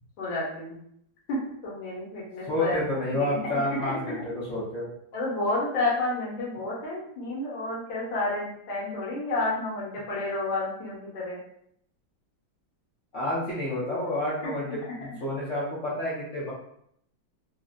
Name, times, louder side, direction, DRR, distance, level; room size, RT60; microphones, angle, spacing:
voice 1, 0.2-0.8 1.3-2.8 3.2-3.9 5.1-11.4 13.9-14.0 14.4-14.5, left 2 dB, 85° left, -6 dB, 1.6 m, -30 dB
voice 2, 2.5-4.9 13.1-16.5, left 1 dB, 55° left, -8 dB, 0.9 m, -29 dB
3.6 x 2.1 x 2.4 m, 0.70 s
omnidirectional pair, 2.1 m